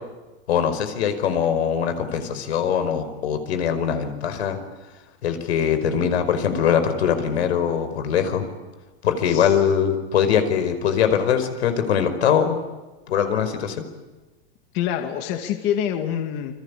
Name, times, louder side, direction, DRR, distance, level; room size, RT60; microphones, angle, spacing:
voice 1, 0.5-4.6 5.2-8.4 9.0-12.6 13.1-13.9, left 8 dB, 90° left, 10 dB, 5.1 m, -22 dB
voice 2, 9.3-9.6 14.7-16.5, left 10 dB, 35° left, 6 dB, 2.3 m, -26 dB
29.0 x 23.5 x 8.5 m, 1.2 s
supercardioid pair, 165°, 32 cm